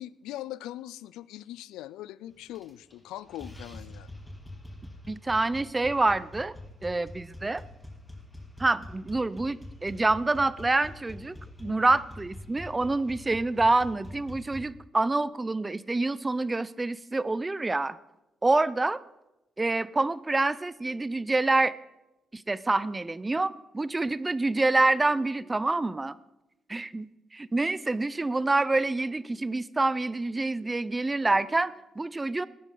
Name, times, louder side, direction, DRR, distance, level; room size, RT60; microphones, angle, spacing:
voice 1, 0.0-4.1 11.6-11.8, left 14 dB, 85° left, 19 dB, 0.3 m, -41 dB
sound 1, 2.4-3.0 3.3-14.6, left 1 dB, 15° left, 2.7 m, -45 dB
voice 2, 5.1-6.6 6.8-7.6 8.6-18.0 18.4-19.0 19.6-21.7 22.3-26.1 26.7-27.1 27.3-32.5, right 2 dB, 25° right, 18 dB, 0.6 m, -27 dB
17.0 x 10.0 x 3.9 m, 0.96 s
supercardioid pair, 60°, 0 cm